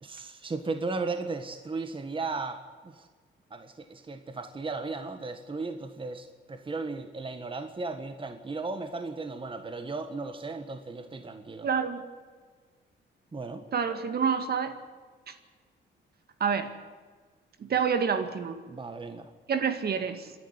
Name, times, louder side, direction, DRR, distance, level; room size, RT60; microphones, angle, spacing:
voice 1, 0.0-3.1 3.5-11.7 13.3-13.6 18.7-19.3, right 3 dB, 25° right, 7 dB, 1.6 m, -36 dB
voice 2, 11.6-12.1 13.7-14.8 15.3-15.4 16.4-16.7 17.6-18.6 19.5-20.3, right 6 dB, 55° right, 8 dB, 2.1 m, -28 dB
27.0 x 11.0 x 9.8 m, 1.5 s
cardioid pair, 90°, 20 cm